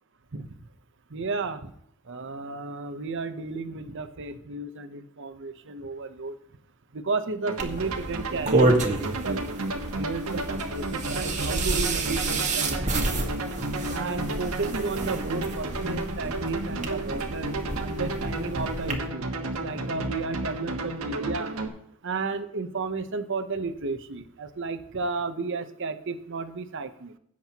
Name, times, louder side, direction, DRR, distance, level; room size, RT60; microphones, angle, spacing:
voice 1, 1.1-1.7 2.1-6.4 6.9-9.6 9.9-13.3 13.9-17.5 17.8-19.3 19.6-21.5 22.0-27.1, right 3 dB, 60° right, 10 dB, 0.8 m, -33 dB
sound 1, 7.5-21.7, right 2 dB, 80° right, 1.3 m, -32 dB
sound 2, 7.6-19.0, right 2 dB, 35° right, 1.6 m, -29 dB
16.5 x 7.5 x 2.9 m, 0.70 s
head